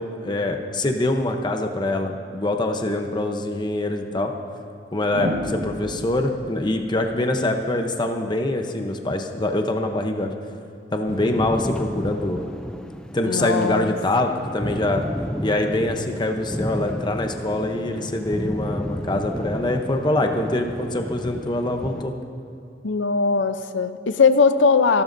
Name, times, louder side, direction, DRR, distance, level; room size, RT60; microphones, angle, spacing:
voice 1, 0.0-4.3 4.9-10.3 10.9-12.4 13.1-15.0 15.4-22.1, left 1 dB, 25° left, 4 dB, 0.8 m, -24 dB
sound 1, 3.6-3.7 5.1-8.1 9.7-10.0, equal, 85° right, 1.6 m, -33 dB
sound 2, 11.1-22.0, equal, 5° left, 0.4 m, -32 dB
voice 2, 13.2-13.9 22.8-25.0, left 4 dB, 80° left, 11 dB, 0.6 m, -19 dB
28.0 x 12.5 x 2.7 m, 2.6 s
head